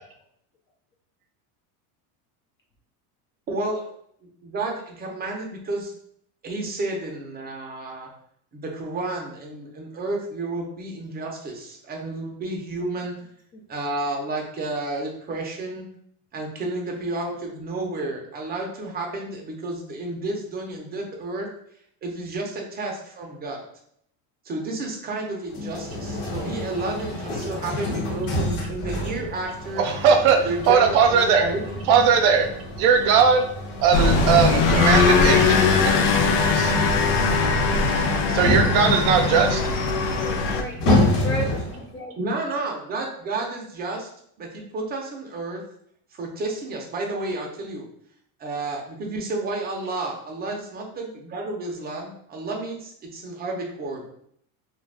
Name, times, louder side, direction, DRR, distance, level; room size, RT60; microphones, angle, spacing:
voice 1, 3.5-3.8 4.4-5.9 6.4-8.1 8.5-13.2 13.7-15.8 16.3-21.5 22.0-23.6 24.5-29.8 30.4-32.0 42.2-44.1 44.4-45.6 46.1-47.9 48.4-54.1, right 2 dB, 20° right, 0 dB, 0.6 m, -31 dB
sound 1, 25.5-41.9, left 1 dB, 90° left, 1.2 m, -28 dB
voice 2, 29.8-31.5 31.9-32.5 32.8-33.4 33.8-35.6 35.9-36.0 36.5-36.8 38.3-39.6, right 6 dB, 70° right, 5 dB, 0.7 m, -19 dB
sound 2, 33.9-40.6, left 4 dB, 70° left, 0.6 m, -20 dB
voice 3, 40.2-42.2, right 1 dB, 25° left, -1 dB, 0.4 m, -34 dB
2.5 x 2.3 x 3.3 m, 0.67 s
supercardioid pair, 125°, 47 cm